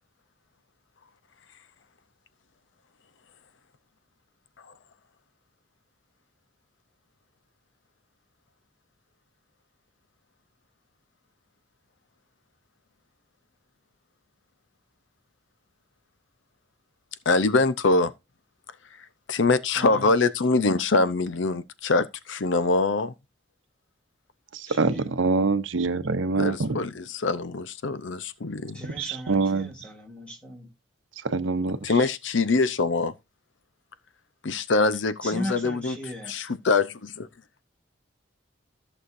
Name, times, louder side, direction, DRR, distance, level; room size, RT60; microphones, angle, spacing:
voice 1, 17.3-18.1 19.3-23.1 26.4-28.8 31.8-33.1 34.4-35.9 36.3-37.3, left 3 dB, 75° left, 0.6 m, -24 dB
voice 2, 19.7-20.1 24.7-25.2 28.7-30.7 35.2-36.3, equal, 5° left, 2.2 m, -37 dB
voice 3, 24.8-26.8 29.0-29.7 31.2-31.8, right 4 dB, 85° right, 0.7 m, -24 dB
14.0 x 6.4 x 2.6 m
head